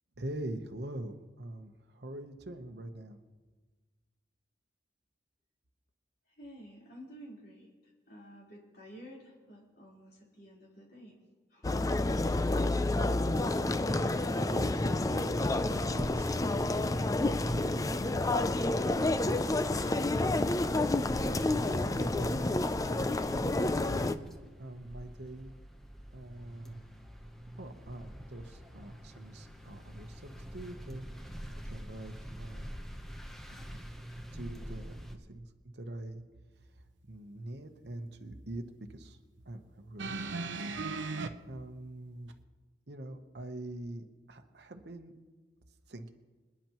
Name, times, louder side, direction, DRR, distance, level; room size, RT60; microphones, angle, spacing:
voice 1, 0.2-3.2 14.5-18.1 20.3-20.7 21.0-22.9 23.8-25.5 26.1-26.8 27.6-32.7 34.3-36.2 36.7-38.6 38.9-39.2 39.4-40.8 41.4-42.3 42.9-45.1 45.9-46.1, right 1 dB, 65° right, 6 dB, 1.0 m, -44 dB
voice 2, 6.4-11.1 11.5-12.9, equal, 60° left, -4 dB, 4.1 m, -51 dB
sound 1, 11.6-24.1, left 2 dB, 20° left, 0.4 m, -29 dB
sound 2, 18.5-35.2, equal, ahead, 0.9 m, -48 dB
sound 3, 40.0-41.3 42.3-42.4, right 3 dB, 85° right, 0.7 m, -36 dB
27.0 x 10.0 x 3.0 m, 1.4 s
head